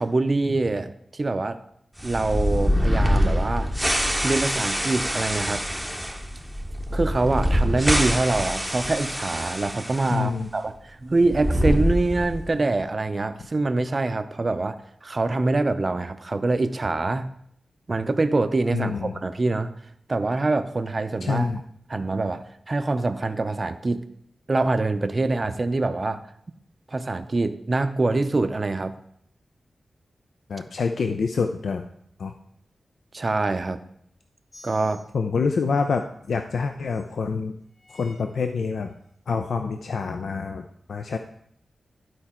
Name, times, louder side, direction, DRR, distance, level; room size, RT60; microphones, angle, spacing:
voice 1, 0.0-1.6 2.0-3.7 4.2-5.6 6.9-17.3 17.9-19.7 20.1-21.5 21.9-24.0 24.5-26.2 26.9-29.0 33.1-33.8 34.6-35.0, right 2 dB, 35° right, 10 dB, 0.5 m, -25 dB
sound 1, 2.0-10.2 10.4-10.5 11.2-12.5, equal, ahead, 0.7 m, -25 dB
voice 2, 10.1-10.5 18.7-19.1 21.2-21.6 30.5-31.8 32.2-32.3 35.1-37.5 37.9-38.9 39.3-41.2, left 5 dB, 75° left, 6 dB, 0.5 m, -26 dB
sound 2, 34.5-35.0 35.8-36.0 36.9-37.0 37.7-38.2 38.9-39.0, left 1 dB, 50° left, 4.0 m, -49 dB
11.5 x 4.6 x 4.3 m, 0.69 s
wide cardioid pair, 130°, 0 cm